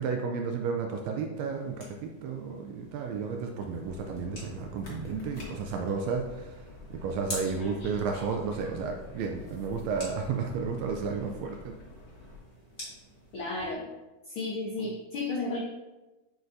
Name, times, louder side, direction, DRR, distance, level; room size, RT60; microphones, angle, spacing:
voice 1, 0.0-6.6 6.9-11.7, right 5 dB, 80° right, 3 dB, 1.6 m, -32 dB
sound 1, 1.3-13.7, left 1 dB, 20° left, 1.9 m, -48 dB
sound 2, 3.8-12.4, left 2 dB, 50° left, 0.7 m, -47 dB
voice 2, 13.3-13.8 14.3-15.6, left 2 dB, 85° left, -2 dB, 1.1 m, -33 dB
8.6 x 4.6 x 2.6 m, 1.1 s
omnidirectional pair, 3.5 m